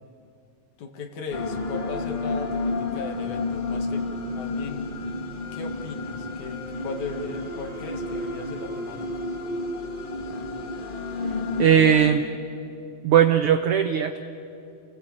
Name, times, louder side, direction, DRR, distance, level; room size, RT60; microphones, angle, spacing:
voice 1, 0.8-4.9 5.5-9.1, left 4 dB, 75° left, 5 dB, 3.1 m, -37 dB
sound 1, 1.3-12.1, left 2 dB, 50° left, 0.6 m, -31 dB
voice 2, 11.6-12.2 13.0-14.2, right 9 dB, 80° right, 8 dB, 1.2 m, -18 dB
29.5 x 16.5 x 8.5 m, 2.7 s
omnidirectional pair, 3.5 m